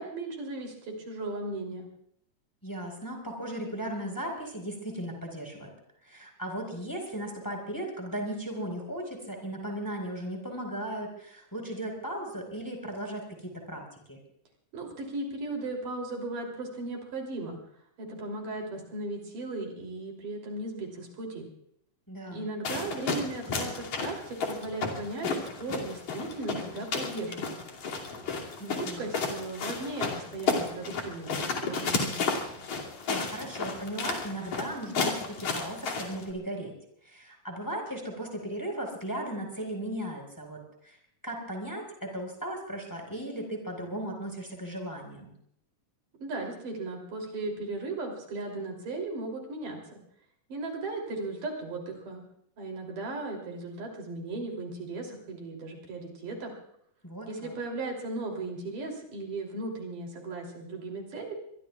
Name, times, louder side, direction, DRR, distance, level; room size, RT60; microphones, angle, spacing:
voice 1, 0.0-1.8 14.7-17.6 18.0-21.5 22.3-27.6 28.6-32.2 46.2-50.0 50.5-52.2 52.6-56.5 57.3-61.3, right 2 dB, 75° right, 0 dB, 4.8 m, -36 dB
voice 2, 2.6-5.7 6.0-14.2 22.1-22.5 28.6-29.1 33.1-36.7 37.0-41.0 41.2-45.3 57.0-57.5, right 1 dB, 5° left, 2 dB, 4.5 m, -37 dB
sound 1, 22.7-36.3, left 4 dB, 65° left, 4.0 m, -33 dB
26.0 x 22.5 x 2.4 m, 0.68 s
omnidirectional pair, 3.7 m